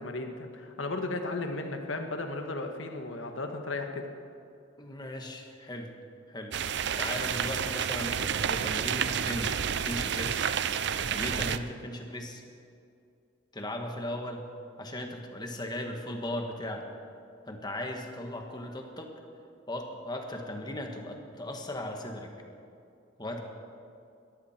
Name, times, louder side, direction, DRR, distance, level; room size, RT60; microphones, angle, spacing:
voice 1, 0.0-4.1, left 2 dB, 90° left, 5 dB, 1.7 m, -35 dB
voice 2, 4.8-5.9 6.3-6.5 7.0-10.4 11.1-12.4 13.5-14.5 14.8-16.8 17.5-19.1 19.7-22.3 23.2-23.4, left 1 dB, 20° left, 3 dB, 1.7 m, -37 dB
sound 1, 6.5-11.6, right 7 dB, 60° right, 0.6 m, -30 dB
21.0 x 14.5 x 4.5 m, 2.5 s
head